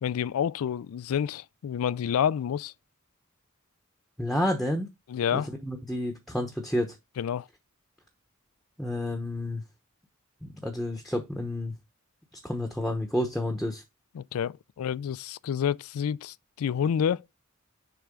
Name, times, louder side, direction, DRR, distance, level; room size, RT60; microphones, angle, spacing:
voice 1, 0.0-2.7 5.1-5.5 7.2-7.5 14.1-17.2, left 8 dB, 75° left, 0.3 m, -29 dB
voice 2, 4.2-4.9 5.3-6.9 8.8-9.6 10.4-11.7 12.4-13.8, left 1 dB, ahead, 0.9 m, -30 dB
6.8 x 4.4 x 3.6 m
head